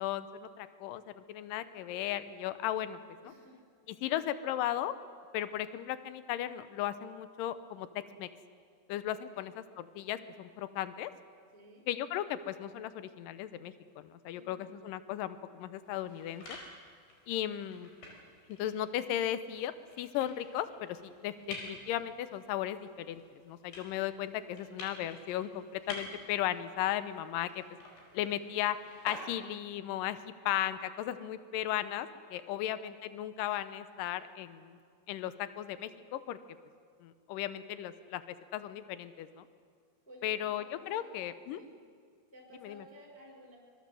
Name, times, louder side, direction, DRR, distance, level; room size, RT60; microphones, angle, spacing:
voice 1, 0.0-3.3 4.0-4.9 5.3-7.9 8.2-8.3 8.9-11.1 11.9-16.6 17.3-17.9 18.6-27.6 28.1-28.8 29.0-30.2 30.5-34.8 35.1-36.4 37.0-38.2 38.5-39.5 40.2-41.6 42.6-42.8, left 12 dB, 80° left, 12 dB, 1.9 m, -36 dB
voice 2, 3.2-3.6 3.9-4.3 9.3-9.4 11.5-11.8 14.3-14.6 28.1-28.3 32.5-32.7 40.1-41.7 42.3-43.6, equal, 5° left, -3 dB, 4.0 m, -55 dB
sound 1, 15.8-29.7, left 2 dB, 65° left, 6.5 m, -50 dB
25.5 x 23.0 x 7.7 m, 2.1 s
omnidirectional pair, 5.1 m